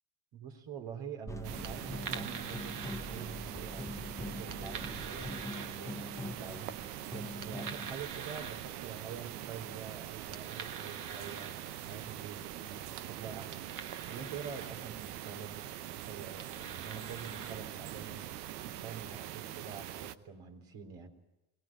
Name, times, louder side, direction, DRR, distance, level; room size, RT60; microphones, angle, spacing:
voice 1, 0.3-13.7 14.1-21.1, right 7 dB, 65° right, 4 dB, 3.9 m, -46 dB
sound 1, 1.3-7.9, left 2 dB, 5° left, 0.7 m, -43 dB
sound 2, 1.3-19.2, right 6 dB, 45° right, 1.7 m, -48 dB
sound 3, 1.4-20.1, right 12 dB, 90° right, 0.9 m, -43 dB
22.0 x 18.5 x 8.9 m, 0.96 s
hypercardioid pair, 75°, 45 cm